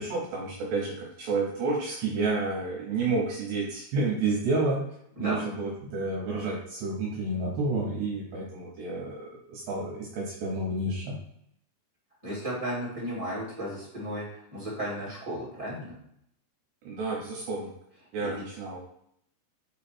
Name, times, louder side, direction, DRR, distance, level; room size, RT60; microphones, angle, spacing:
voice 1, 0.0-4.8 5.2-11.2 16.8-17.7 18.1-18.8, right 3 dB, 75° right, -3 dB, 3.0 m, -30 dB
voice 2, 12.2-16.0 18.2-18.3, equal, 25° right, -7 dB, 0.7 m, -34 dB
7.7 x 3.2 x 4.3 m, 0.71 s
omnidirectional pair, 5.2 m